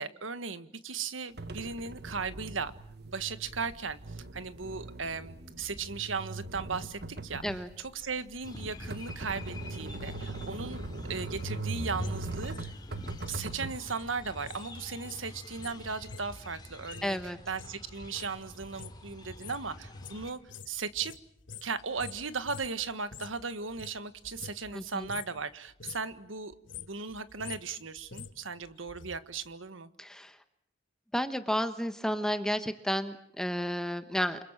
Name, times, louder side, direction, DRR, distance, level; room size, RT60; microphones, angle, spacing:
voice 1, 0.0-2.7 3.0-10.8 11.1-12.7 13.3-20.4 20.7-21.1 21.6-29.9, right 5 dB, 80° right, 12 dB, 1.5 m, -37 dB
sound 1, 1.4-13.8, right 2 dB, 55° right, 1.4 m, -40 dB
sound 2, 8.4-20.3, left 1 dB, 20° left, 3.1 m, -47 dB
sound 3, 11.3-14.7 14.9-23.4 23.7-24.8 25.0-25.4 25.7-26.1 26.5-29.2 29.5-29.6, left 4 dB, 65° left, 1.6 m, -47 dB
voice 2, 17.0-17.4 24.7-25.1 30.0-30.4 31.1-34.4, equal, 5° left, 9 dB, 1.2 m, -32 dB
28.5 x 25.0 x 7.4 m, 0.68 s
head